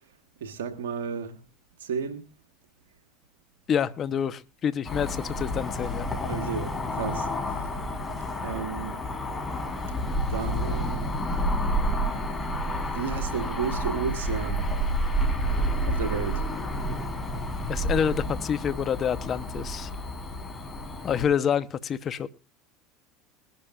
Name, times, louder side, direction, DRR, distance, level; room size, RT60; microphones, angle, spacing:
voice 1, 0.4-1.4 1.8-2.3 6.2-7.7 8.4-9.0 10.3-11.1 12.9-14.7 15.8-16.4, right 6 dB, 85° right, 1.7 m, -33 dB
voice 2, 3.7-6.1 17.7-19.9 21.0-22.3, left 8 dB, 40° left, 1.1 m, -27 dB
Cricket / Motor vehicle (road), 4.8-21.2, equal, 20° left, 4.6 m, -29 dB
22.0 x 11.5 x 2.6 m
hypercardioid pair, 95°, 0 cm